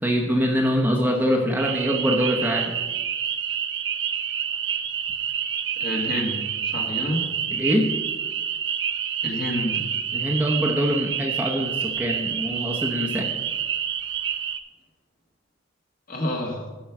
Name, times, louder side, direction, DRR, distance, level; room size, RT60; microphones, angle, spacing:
voice 1, 0.0-2.8 7.5-7.9 10.1-13.3, equal, 10° right, 0 dB, 0.9 m, -24 dB
sound 1, 1.6-14.6, right 8 dB, 55° right, 0.6 m, -28 dB
voice 2, 5.8-6.4 6.7-7.2 9.2-9.8 16.1-16.7, left 1 dB, 45° left, 0 dB, 1.9 m, -28 dB
12.0 x 5.5 x 5.9 m, 1.2 s
head